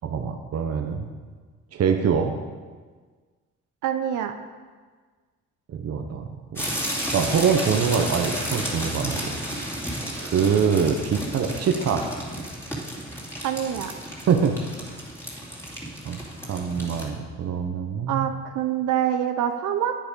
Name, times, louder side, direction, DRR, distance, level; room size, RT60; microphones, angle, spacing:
voice 1, 0.0-1.1 1.7-2.3 5.7-6.6 7.1-9.8 10.2-12.1 14.2-14.6 14.9-15.0 16.0-16.2 16.5-18.3, right 6 dB, 55° right, 4 dB, 0.9 m, -24 dB
voice 2, 3.8-4.3 13.4-13.9 18.1-20.0, right 10 dB, 80° right, 7 dB, 0.7 m, -25 dB
sound 1, 6.6-17.1, equal, 10° left, 2.5 m, -32 dB
9.0 x 7.5 x 5.2 m, 1.5 s
cardioid pair, 95°, 30 cm